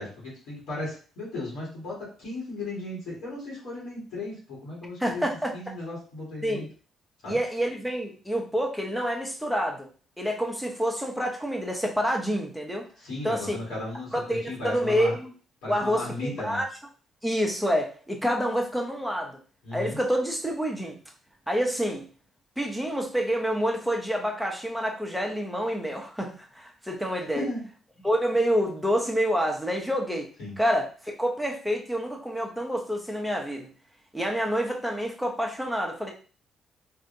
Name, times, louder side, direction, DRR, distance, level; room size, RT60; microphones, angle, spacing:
voice 1, 0.0-5.2 5.5-6.7 7.2-7.4 13.0-15.1 15.6-16.6 19.6-20.0 27.3-27.6 30.4-30.5, left 2 dB, 90° left, -5 dB, 1.6 m, -35 dB
voice 2, 5.0-5.5 6.4-6.7 7.3-9.9 10.2-12.9 13.2-13.6 14.1-15.3 15.7-16.6 17.2-19.4 19.7-21.0 21.5-22.0 22.6-27.5 28.0-30.3 30.6-33.7 34.1-36.1, equal, ahead, 1 dB, 0.7 m, -27 dB
3.4 x 2.6 x 2.6 m, 0.39 s
cardioid pair, 90°, 0 cm